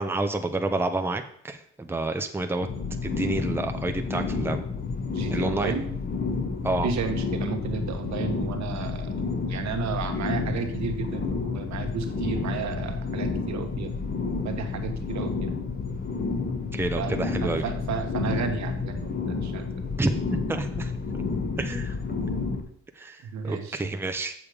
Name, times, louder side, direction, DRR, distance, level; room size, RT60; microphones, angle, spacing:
voice 1, 0.0-2.7 3.0-4.7 5.3-5.8 6.6-6.9 16.7-17.6 20.0-20.9 21.6-22.0 23.0-24.3, right 2 dB, 10° right, 6 dB, 0.8 m, -29 dB
sound 1, 2.6-22.6, left 4 dB, 30° left, 1.4 m, -30 dB
voice 2, 5.1-5.9 6.8-9.2 9.5-13.9 14.4-15.6 17.0-19.8 22.2-22.3 23.2-23.9, right 6 dB, 65° right, 6 dB, 1.4 m, -33 dB
7.1 x 7.1 x 5.0 m, 0.63 s
cardioid pair, 90°, 30 cm